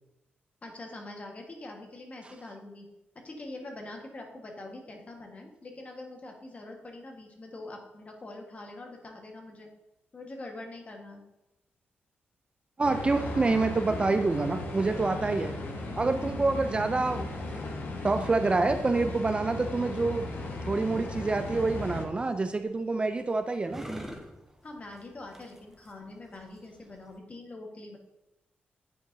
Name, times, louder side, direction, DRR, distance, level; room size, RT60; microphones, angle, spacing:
voice 1, 0.6-2.9 3.1-9.7 10.1-11.2 24.6-28.0, left 2 dB, 35° left, 2 dB, 1.3 m, -44 dB
sound 1, 12.8-22.0, left 2 dB, 55° left, 1.1 m, -36 dB
voice 2, 12.8-15.6 16.0-17.6 18.0-20.3 20.7-23.9, right 3 dB, 25° right, 8 dB, 0.3 m, -27 dB
sound 2, 21.1-27.2, right 1 dB, 5° right, 0.9 m, -46 dB
9.3 x 4.6 x 2.6 m, 0.92 s
cardioid pair, 95°, 4 cm